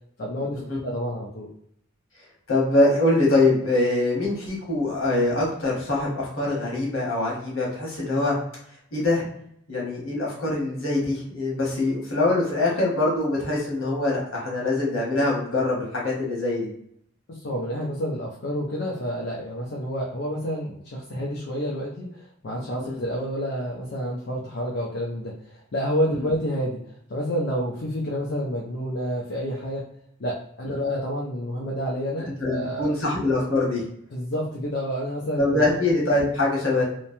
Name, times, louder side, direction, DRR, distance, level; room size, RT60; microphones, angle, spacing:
voice 1, 0.2-1.5 17.3-26.8 27.1-29.8 30.2-33.0 34.1-35.7, equal, 55° left, -3 dB, 0.5 m, -29 dB
voice 2, 2.5-8.3 8.9-9.3 9.7-16.7 22.8-23.0 26.1-26.2 30.6-30.9 32.4-33.8 35.3-36.8, left 2 dB, 85° left, -3 dB, 1.3 m, -23 dB
3.0 x 2.1 x 2.6 m, 0.70 s
head